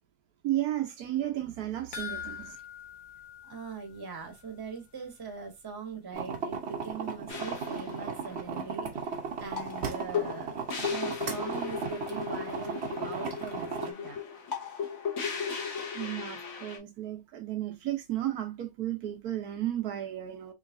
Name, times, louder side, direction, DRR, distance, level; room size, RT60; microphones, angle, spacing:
voice 1, 0.4-2.6 15.9-20.5, right 13 dB, 75° right, 1.2 m, -33 dB
sound 1, 1.9-4.5 4.8-4.9 5.3-5.4, left 8 dB, 75° left, 1.2 m, -43 dB
voice 2, 3.4-14.2, right 5 dB, 20° right, 0.9 m, -42 dB
sound 2, 6.1-13.9, right 5 dB, 50° right, 0.9 m, -36 dB
sound 3, 7.3-16.8, left 6 dB, 55° left, 1.3 m, -36 dB
3.9 x 3.1 x 2.5 m
omnidirectional pair, 1.7 m